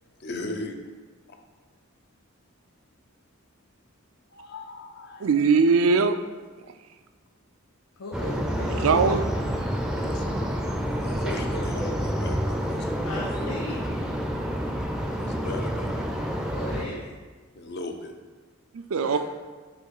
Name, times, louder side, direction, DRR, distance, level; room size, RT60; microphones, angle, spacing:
voice 1, 0.0-0.7 1.3-1.4 4.3-5.3 9.8-10.6 11.0-13.8 15.2-15.9 17.5-18.1, left 2 dB, 50° left, 5 dB, 0.7 m, -38 dB
voice 2, 5.2-6.2 8.8-9.3 18.7-19.2, right 5 dB, 75° right, 9 dB, 0.4 m, -20 dB
voice 3, 8.0-9.1 13.0-13.9 16.5-17.0 19.0-19.2, left 1 dB, 85° left, -3 dB, 0.8 m, -36 dB
sound 1, 8.1-16.8, equal, 5° right, 0.5 m, -28 dB
8.3 x 3.1 x 4.7 m, 1.4 s
head